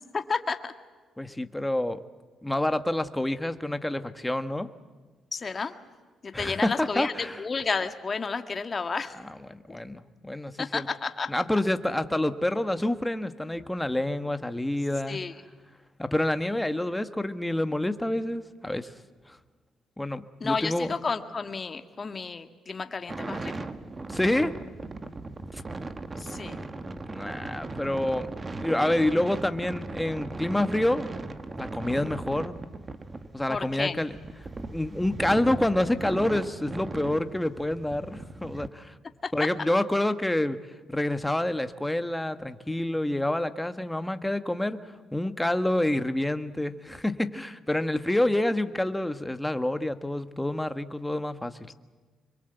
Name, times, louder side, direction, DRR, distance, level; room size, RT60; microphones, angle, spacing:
voice 1, 0.1-0.7 5.3-5.8 6.2-9.1 9.7-9.8 10.6-11.4 15.1-15.3 20.4-23.5 26.2-26.6 33.5-34.0 39.2-39.5 51.7-51.8, left 4 dB, 35° left, 8 dB, 1.8 m, -31 dB
voice 2, 1.2-2.0 2.4-4.7 6.3-7.4 9.5-10.9 11.3-15.2 16.0-18.9 20.0-20.9 24.1-24.5 27.1-28.3 28.6-31.1 31.6-32.5 33.3-34.2 34.7-38.9 39.3-40.6 40.9-44.8 45.1-51.5, left 1 dB, 10° left, 10 dB, 1.4 m, -27 dB
sound 1, 23.1-38.7, right 2 dB, 30° right, 1.6 m, -38 dB
26.0 x 23.0 x 8.1 m, 1.4 s
cardioid pair, 90°, 0 cm